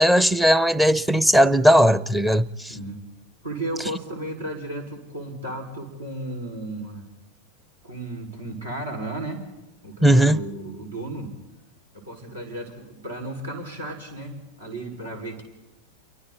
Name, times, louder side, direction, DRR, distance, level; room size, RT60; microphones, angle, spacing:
voice 1, 0.0-2.7 10.0-10.4, equal, 5° right, 0.7 m, -17 dB
voice 2, 0.8-1.2 2.7-3.0 3.4-7.1 7.8-9.4 9.8-11.3 11.9-15.4, right 1 dB, 75° right, 5.2 m, -34 dB
29.0 x 24.0 x 4.1 m
figure-of-eight pair, 90°, 0 cm